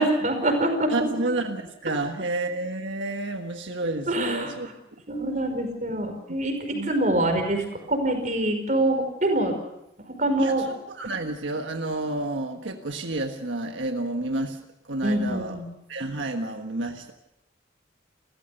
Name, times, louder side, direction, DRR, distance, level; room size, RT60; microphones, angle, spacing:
voice 1, 0.0-0.9 4.1-4.6 5.1-9.5 10.2-10.7 15.0-15.7, right 1 dB, 40° right, 5 dB, 5.1 m, -25 dB
voice 2, 0.9-4.7 6.7-7.5 10.4-15.6 15.9-17.1, right 2 dB, 90° right, 4 dB, 1.5 m, -30 dB
29.5 x 15.0 x 6.7 m, 0.86 s
head